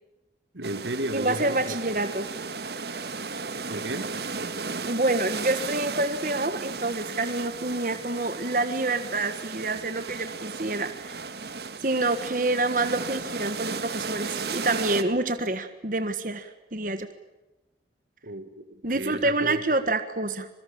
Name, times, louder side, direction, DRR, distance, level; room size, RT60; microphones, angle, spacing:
voice 1, 0.5-1.8 3.7-4.1 18.2-19.6, right 1 dB, 85° right, 11 dB, 2.3 m, -34 dB
sound 1, 0.6-15.0, right 4 dB, 65° right, 1.8 m, -35 dB
voice 2, 1.1-2.3 4.8-11.2 11.8-17.1 18.8-20.5, right 2 dB, 45° right, 9 dB, 1.5 m, -27 dB
25.5 x 23.5 x 8.7 m, 1.0 s
head